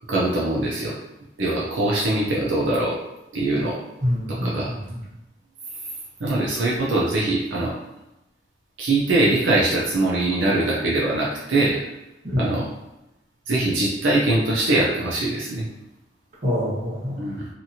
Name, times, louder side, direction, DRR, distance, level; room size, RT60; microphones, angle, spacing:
voice 1, 0.1-0.9 1.4-3.0 3.3-3.8 4.4-4.7 6.2-7.8 8.8-11.8 12.4-12.7 13.5-15.6 17.2-17.5, right 2 dB, 90° right, -5 dB, 0.6 m, -22 dB
voice 2, 4.0-5.0 12.2-12.6 16.4-17.2, equal, 45° right, -8 dB, 1.2 m, -26 dB
2.9 x 2.5 x 2.7 m, 0.93 s
head